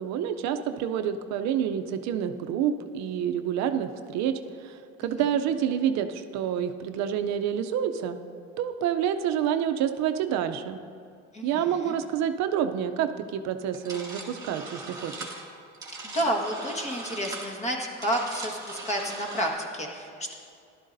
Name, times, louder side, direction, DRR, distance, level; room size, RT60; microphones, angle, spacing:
voice 1, 0.0-8.2 8.6-10.8 11.4-15.3, right 9 dB, 65° right, 8 dB, 0.6 m, -28 dB
voice 2, 11.3-12.0 16.0-20.3, equal, 20° left, 0 dB, 1.5 m, -30 dB
sound 1, 13.7-19.5, right 2 dB, 10° right, 2.2 m, -40 dB
16.0 x 12.0 x 2.6 m, 2.4 s
cardioid pair, 140°, 30 cm